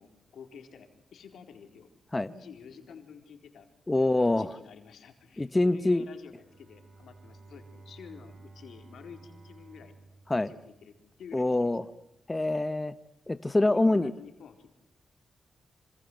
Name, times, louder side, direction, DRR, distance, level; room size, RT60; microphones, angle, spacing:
voice 1, 0.0-1.9 2.3-3.7 4.0-9.9 10.4-11.7 13.5-14.7, left 7 dB, 85° left, 6 dB, 4.1 m, -50 dB
voice 2, 3.9-4.5 5.4-6.0 10.3-10.5 11.3-11.8 12.3-12.9 13.3-14.1, left 2 dB, 20° left, 13 dB, 1.1 m, -25 dB
Bowed string instrument, 6.3-11.3, right 3 dB, 50° right, 3.3 m, -53 dB
27.0 x 26.5 x 8.0 m, 0.82 s
cardioid pair, 75°, 0 cm